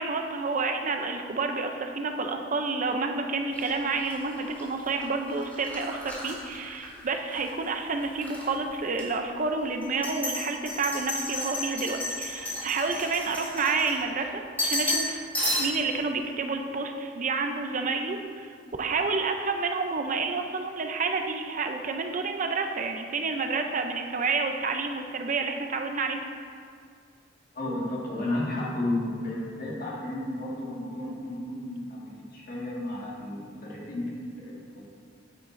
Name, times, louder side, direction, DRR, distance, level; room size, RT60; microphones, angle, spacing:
voice 1, 0.0-15.3 15.6-18.5 18.8-26.2, right 4 dB, 45° right, 5 dB, 0.5 m, -29 dB
sound 1, 3.5-7.5 7.8-8.5 8.9-9.0 9.8-14.2 14.6-15.1 15.3-15.9, left 1 dB, 10° left, 2.0 m, -32 dB
voice 2, 27.5-34.8, left 1 dB, 50° left, -5 dB, 1.8 m, -33 dB
9.5 x 8.5 x 2.6 m, 2.2 s
head